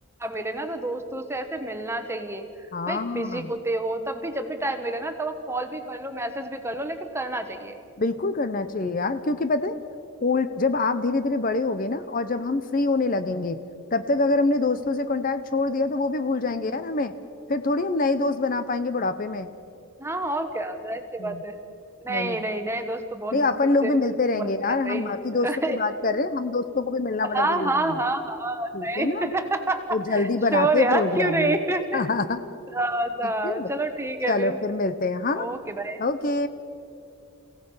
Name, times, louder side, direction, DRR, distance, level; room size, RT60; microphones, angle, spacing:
voice 1, 0.2-2.5 2.9-7.8 20.0-21.5 22.0-23.9 24.4-24.5 24.8-25.1 25.4-25.8 27.3-29.8 30.1-30.2 30.5-32.0 32.7-34.6 35.3-36.0, right 2 dB, 10° right, 7 dB, 1.2 m, -28 dB
voice 2, 2.7-3.5 8.0-9.8 10.2-13.6 13.9-17.1 17.5-19.5 21.2-21.4 22.1-22.4 23.3-28.0 28.7-29.3 29.9-31.6 31.9-32.4 33.4-33.7 34.3-35.5 36.0-36.5, left 3 dB, 40° left, 11 dB, 0.6 m, -25 dB
29.0 x 16.5 x 5.6 m, 2.5 s
head